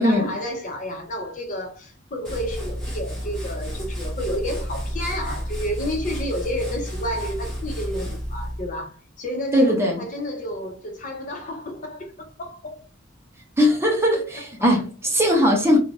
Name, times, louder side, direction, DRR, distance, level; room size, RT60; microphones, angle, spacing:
voice 1, 0.0-12.8 14.1-14.4, equal, 40° left, 0.5 m, -31 dB
sound 1, 2.2-8.8, equal, 5° left, 1.0 m, -31 dB
voice 2, 9.5-10.0 13.6-15.8, equal, 10° right, 0.7 m, -19 dB
2.6 x 2.4 x 3.1 m
head